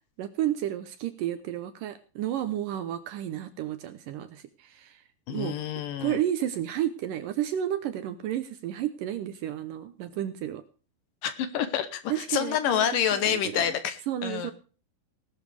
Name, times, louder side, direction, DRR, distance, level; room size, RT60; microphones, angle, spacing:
voice 1, 0.2-5.0 5.3-5.6 6.0-10.6 12.1-13.7 14.1-14.5, right 11 dB, 75° right, 11 dB, 2.2 m, -32 dB
voice 2, 5.3-6.2 11.2-14.0 14.2-14.5, left 9 dB, 70° left, 11 dB, 2.4 m, -28 dB
18.5 x 11.5 x 3.4 m, 0.36 s
omnidirectional pair, 4.5 m